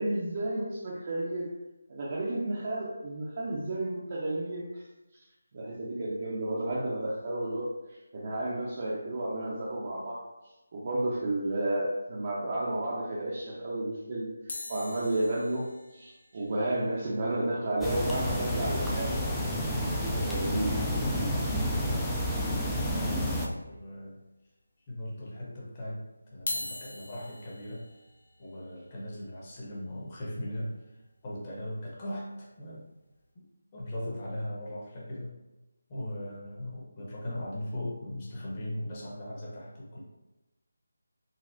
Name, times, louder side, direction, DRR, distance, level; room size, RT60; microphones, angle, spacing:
voice 1, 0.0-1.6 1.9-4.8 5.5-7.7 8.1-10.2 10.7-19.2 19.8-21.0, right 1 dB, 40° right, -5 dB, 0.5 m, -32 dB
sound 1, 14.5-18.8 19.1-19.2 19.4-19.6 20.0-20.1 21.4-21.5 22.2-22.8 23.3-23.4 24.2-24.3 26.3-32.4 33.0-33.2, left 2 dB, 60° left, 0.7 m, -44 dB
sound 2, 17.8-23.5, left 1 dB, 5° left, 0.3 m, -30 dB
voice 2, 22.4-22.7 23.6-24.2 24.9-26.0 26.3-27.9 28.4-32.9 33.3-33.4 33.7-35.4 35.9-40.0, left 1 dB, 30° left, -5 dB, 0.9 m, -38 dB
4.0 x 2.0 x 2.6 m, 1.0 s
figure-of-eight pair, 165°, 0 cm